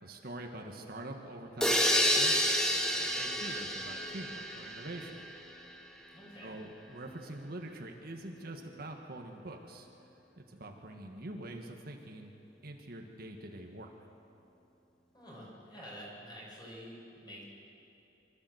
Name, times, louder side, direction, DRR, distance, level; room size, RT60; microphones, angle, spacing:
voice 1, 0.0-5.2 6.4-9.9 10.4-12.3 12.6-13.9, right 1 dB, 55° right, 2 dB, 1.5 m, -45 dB
sound 1, 1.6-5.4, equal, 5° left, 1.5 m, -29 dB
voice 2, 6.1-6.6 15.1-17.4, equal, 25° left, -5 dB, 6.0 m, -48 dB
25.0 x 13.5 x 7.9 m, 2.9 s
head